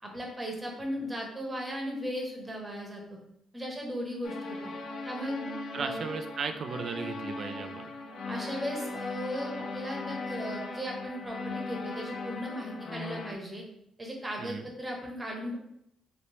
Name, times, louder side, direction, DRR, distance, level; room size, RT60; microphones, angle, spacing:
voice 1, 0.0-3.0 3.5-4.7 5.0-5.3 5.8-6.0 8.3-13.6 14.0-15.6, equal, 20° right, 0 dB, 1.0 m, -37 dB
sound 1, 4.2-13.3, left 2 dB, 65° left, 0.4 m, -38 dB
voice 2, 5.7-7.9 14.4-14.7, right 5 dB, 55° right, 7 dB, 0.4 m, -36 dB
3.2 x 2.8 x 3.0 m, 0.76 s
cardioid pair, 90°, 0 cm